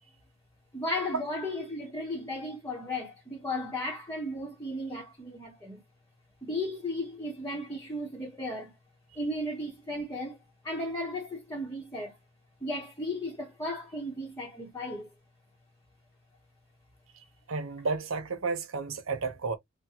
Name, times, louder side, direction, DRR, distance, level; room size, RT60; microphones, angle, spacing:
voice 1, 0.7-5.8 6.4-8.7 9.1-10.4 10.6-12.2 12.6-15.1, left 1 dB, 15° left, 0.9 m, -35 dB
voice 2, 17.5-19.6, right 4 dB, 80° right, 0.8 m, -32 dB
3.6 x 2.2 x 2.8 m
head